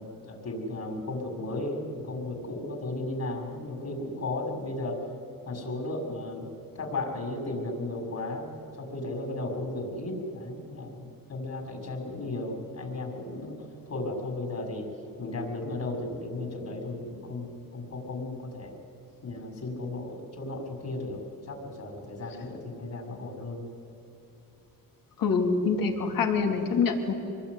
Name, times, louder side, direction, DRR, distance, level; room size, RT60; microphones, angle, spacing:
voice 1, 0.0-5.0 5.4-6.5 6.7-13.6 13.9-14.9 15.2-18.7 19.2-23.7, left 2 dB, 45° left, 3 dB, 6.3 m, -35 dB
voice 2, 25.2-27.1, left 5 dB, 65° left, 4 dB, 3.3 m, -25 dB
25.5 x 21.0 x 9.8 m, 3.0 s
cardioid pair, 95°, 37 cm